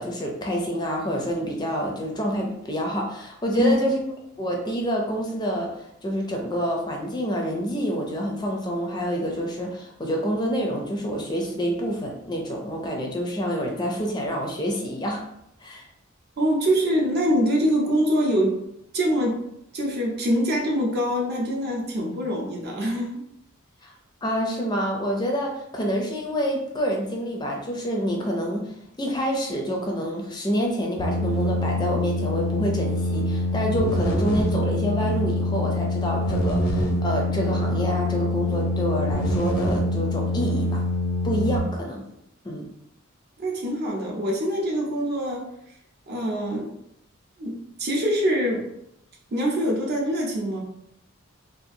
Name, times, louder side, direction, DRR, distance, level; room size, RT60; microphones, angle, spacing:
voice 1, 0.0-4.0 4.4-15.2 15.6-15.9 23.8-23.9 24.2-28.7 29.0-40.8 41.2-42.0 42.4-42.7, equal, 20° left, 0 dB, 0.4 m, -27 dB
voice 2, 16.4-18.6 18.9-19.4 19.7-23.2 43.4-45.5 46.1-46.7 47.4-47.5 47.8-48.7 49.3-50.6, equal, 50° right, -1 dB, 0.6 m, -24 dB
sound 1, 31.0-41.6, left 1 dB, 75° left, 0.5 m, -25 dB
2.7 x 2.4 x 2.6 m, 0.78 s
head